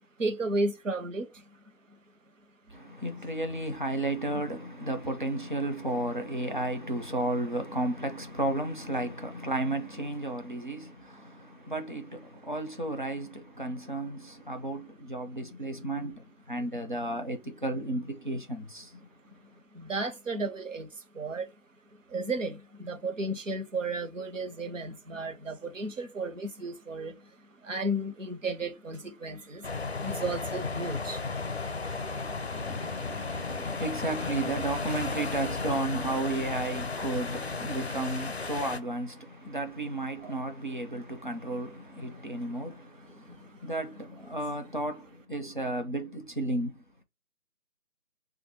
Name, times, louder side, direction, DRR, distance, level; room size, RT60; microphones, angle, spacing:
voice 1, 0.2-1.4 19.7-20.9 21.1-21.5 22.1-27.2 27.6-29.7 30.0-31.2 31.8-32.1 33.4-33.8 40.2-40.3 43.2-43.4, right 2 dB, 65° right, 1.0 m, -34 dB
voice 2, 2.7-19.1 32.5-46.8, right 2 dB, 35° right, 0.5 m, -33 dB
sound 1, 29.6-38.8, left 4 dB, 50° left, 0.5 m, -34 dB
3.1 x 2.5 x 4.2 m
figure-of-eight pair, 170°, 41 cm